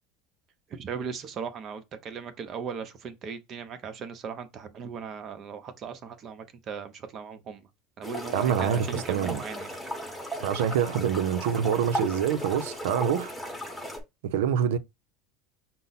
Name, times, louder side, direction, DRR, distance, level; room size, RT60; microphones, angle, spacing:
voice 1, 0.7-7.7 8.0-9.8, right 6 dB, 40° right, 0.8 m, -38 dB
sound 1, 8.0-14.0, equal, 5° left, 1.1 m, -36 dB
voice 2, 8.3-9.4 10.4-13.3 14.2-14.8, right 8 dB, 90° right, 0.5 m, -26 dB
5.4 x 2.0 x 4.0 m
supercardioid pair, 125°, 0 cm